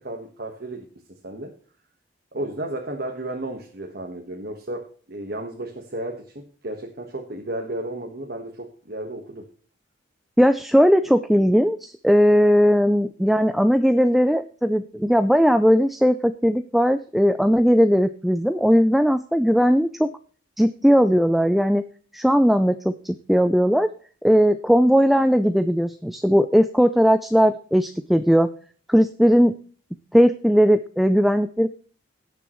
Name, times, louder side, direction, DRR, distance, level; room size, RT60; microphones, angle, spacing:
voice 1, 0.0-1.5 2.3-9.5, right 1 dB, 50° right, 2 dB, 1.4 m, -33 dB
voice 2, 10.4-20.1 20.6-21.8 22.1-23.9 24.2-28.5 28.9-29.5 30.1-31.7, equal, ahead, 9 dB, 0.4 m, -18 dB
18.0 x 6.8 x 3.1 m, 0.43 s
head